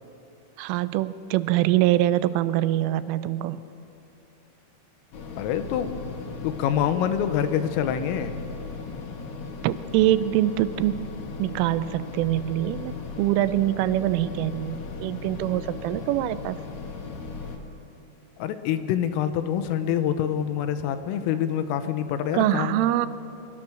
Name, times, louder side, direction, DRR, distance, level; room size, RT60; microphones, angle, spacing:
voice 1, 0.6-3.6 9.6-11.1 11.4-16.6 22.3-23.1, right 14 dB, 85° right, 14 dB, 3.1 m, -24 dB
sound 1, 5.1-17.6, left 4 dB, 65° left, 1.8 m, -37 dB
voice 2, 5.4-8.4 18.4-22.8, left 9 dB, 85° left, 10 dB, 3.7 m, -26 dB
23.0 x 22.5 x 6.4 m, 2.8 s
omnidirectional pair, 5.8 m